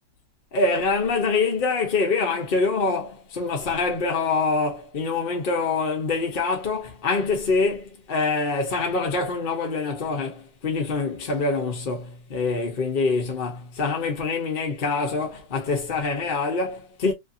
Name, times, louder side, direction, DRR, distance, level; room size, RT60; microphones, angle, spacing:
voice 1, 0.5-17.1, left 4 dB, 50° left, 0.6 m, -25 dB
3.2 x 2.5 x 2.5 m
omnidirectional pair, 1.9 m